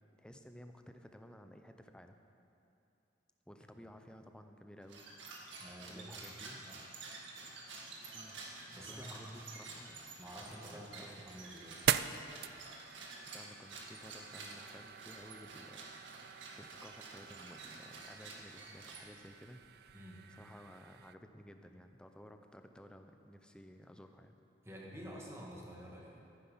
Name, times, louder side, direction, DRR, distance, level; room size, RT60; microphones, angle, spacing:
voice 1, 0.2-2.2 3.5-5.1 5.9-6.6 8.1-8.4 8.9-10.2 10.7-11.1 13.3-15.9 16.6-19.6 20.3-24.4, equal, 5° left, 6 dB, 0.6 m, -55 dB
sound 1, 4.8-19.4, right 3 dB, 80° right, 1.8 m, -51 dB
voice 2, 5.6-6.9 8.7-9.5 10.2-11.8 19.9-20.3 24.6-26.2, equal, 15° right, -3 dB, 1.9 m, -50 dB
sound 2, 10.2-21.1, right 10 dB, 55° right, 0.3 m, -43 dB
13.5 x 9.9 x 5.7 m, 2.7 s
head